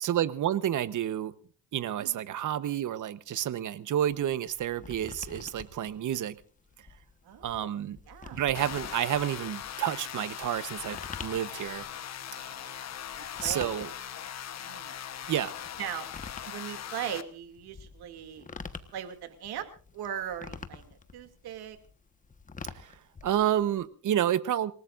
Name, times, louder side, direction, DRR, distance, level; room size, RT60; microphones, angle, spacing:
voice 1, 0.0-1.3 1.7-6.4 7.4-8.0 8.3-11.8 13.4-13.9 15.3-15.5 22.7-22.9 23.2-24.7, right 11 dB, 50° right, 1.1 m, -30 dB
sound 1, 4.1-23.9, left 4 dB, 20° left, 1.3 m, -47 dB
voice 2, 7.2-7.8 8.1-8.4 12.3-12.9 13.1-13.7 14.3-14.4 14.6-14.9 15.8-16.1 16.5-19.7 19.9-21.8, right 10 dB, 65° right, 2.7 m, -39 dB
sound 2, 8.5-17.2, left 9 dB, 40° left, 1.1 m, -40 dB
28.0 x 18.5 x 2.6 m
cardioid pair, 130°, 40 cm